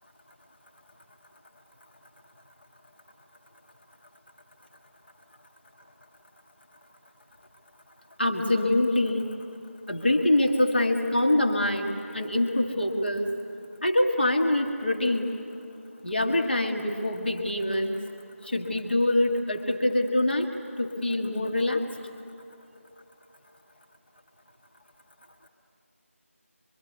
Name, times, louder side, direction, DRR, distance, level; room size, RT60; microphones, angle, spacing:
voice 1, 8.2-9.3 9.9-13.3 13.8-15.3 16.0-18.0 18.4-20.5 20.8-21.8, left 1 dB, 45° left, 2 dB, 1.8 m, -25 dB
24.5 x 23.5 x 9.7 m, 2.9 s
figure-of-eight pair, 180°, 8 cm